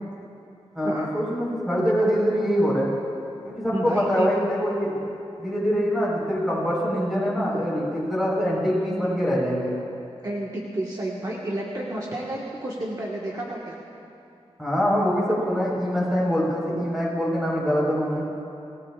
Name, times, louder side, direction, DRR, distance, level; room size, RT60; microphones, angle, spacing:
voice 1, 0.7-2.9 3.4-5.1 5.4-9.7 14.6-18.2, equal, ahead, -5 dB, 4.3 m, -24 dB
voice 2, 3.7-4.3 10.2-13.8, right 1 dB, 35° right, -4 dB, 1.4 m, -30 dB
26.5 x 17.0 x 2.4 m, 2.7 s
wide cardioid pair, 155°, 11 cm